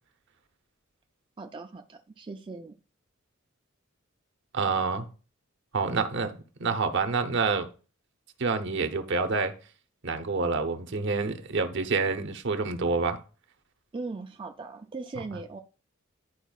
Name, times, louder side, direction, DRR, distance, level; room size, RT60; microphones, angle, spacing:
voice 1, 1.4-2.8 13.9-15.6, right 3 dB, 25° right, 0.4 m, -39 dB
voice 2, 4.5-5.1 5.7-7.7 8.4-9.5 10.0-13.2, right 4 dB, 60° right, 0.8 m, -27 dB
11.0 x 4.5 x 2.3 m
head